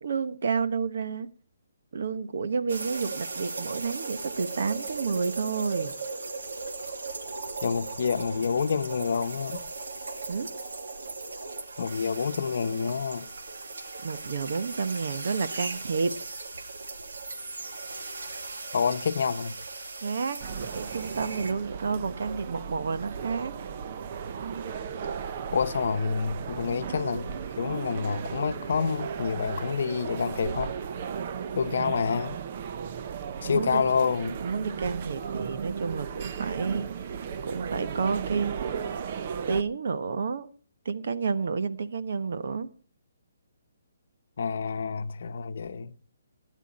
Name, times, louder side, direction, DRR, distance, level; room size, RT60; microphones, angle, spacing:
voice 1, 0.0-1.3 1.9-6.0 10.3-10.5 14.0-16.2 20.0-23.5 33.4-33.9 34.4-38.5 39.5-40.5 40.8-42.7, right 5 dB, 60° right, 1.2 m, -30 dB
sound 1, 2.7-21.5, right 3 dB, 90° right, 2.5 m, -38 dB
voice 2, 7.6-9.6 11.8-13.3 18.7-19.6 25.5-30.7 31.5-32.4 33.4-34.4 44.4-45.9, left 6 dB, 60° left, 0.9 m, -28 dB
sound 2, 20.4-39.6, right 7 dB, 35° right, 0.7 m, -35 dB
18.0 x 10.5 x 4.3 m
hypercardioid pair, 170°, 0 cm